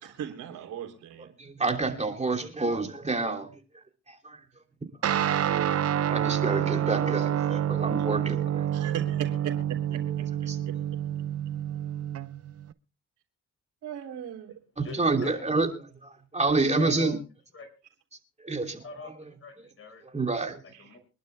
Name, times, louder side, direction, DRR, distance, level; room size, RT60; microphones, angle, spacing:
voice 1, 0.0-1.3 8.7-10.5 13.8-14.6, right 9 dB, 80° right, 3.5 m, -38 dB
voice 2, 1.4-3.6 4.1-4.4 6.1-8.7 10.5-10.6 14.8-15.7 16.0-17.2 18.4-19.1 20.1-20.6, right 3 dB, 20° right, 3.1 m, -28 dB
Guitar, 5.0-12.7, right 10 dB, 50° right, 0.8 m, -28 dB
voice 3, 14.8-15.4 16.8-17.1 17.5-17.7 18.8-20.0 20.6-21.0, left 4 dB, 45° left, 5.9 m, -43 dB
25.5 x 11.5 x 2.3 m
cardioid pair, 90°, 30 cm